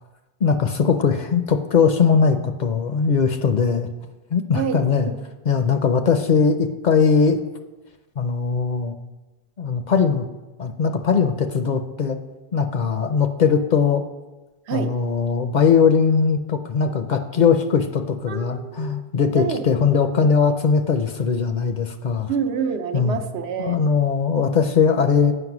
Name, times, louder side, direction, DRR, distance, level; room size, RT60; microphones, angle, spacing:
voice 1, 0.4-3.9 4.3-5.1 5.5-7.4 8.2-8.9 9.6-10.3 10.6-12.2 12.5-14.0 14.7-22.3 22.9-23.2 23.6-25.3, left 6 dB, 55° left, 8 dB, 0.6 m, -20 dB
voice 2, 4.5-5.2 14.7-15.0 18.3-19.0 19.3-19.7 22.3-23.8, right 7 dB, 85° right, 8 dB, 0.9 m, -27 dB
7.9 x 5.5 x 5.9 m, 1.1 s
omnidirectional pair, 1.1 m